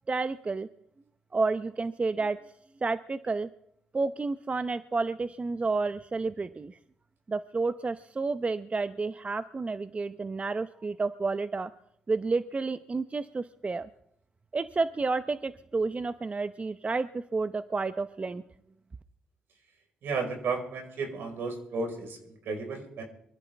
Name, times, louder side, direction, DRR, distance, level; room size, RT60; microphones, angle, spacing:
voice 1, 0.1-0.7 1.3-2.4 2.8-3.5 3.9-6.7 7.3-11.7 12.1-13.9 14.5-18.4, right 3 dB, 35° right, 11 dB, 0.8 m, -30 dB
voice 2, 20.0-23.0, right 4 dB, 70° right, 3 dB, 4.9 m, -33 dB
24.0 x 14.5 x 3.5 m, 0.76 s
supercardioid pair, 50°, 4 cm